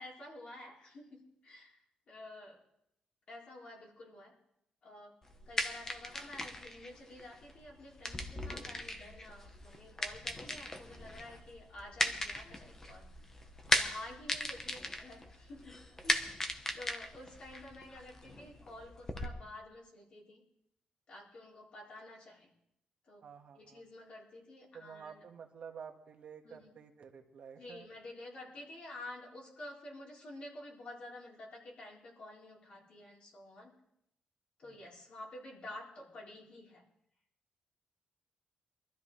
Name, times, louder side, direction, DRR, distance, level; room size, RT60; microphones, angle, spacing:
voice 1, 0.0-2.6 3.3-4.3 4.8-5.1 5.5-13.1 13.7-15.8 16.0-20.4 21.1-22.5 23.1-23.2 23.5-25.2 26.4-26.7 27.5-33.7 34.6-36.8, left 1 dB, 45° left, -3 dB, 3.9 m, -50 dB
sound 1, 5.2-19.3, left 2 dB, 20° left, 1.0 m, -38 dB
voice 2, 23.2-23.8 24.7-27.9 34.6-34.8, right 7 dB, 55° right, 3 dB, 1.6 m, -50 dB
23.5 x 13.0 x 3.3 m, 0.78 s
wide cardioid pair, 175°, 3 cm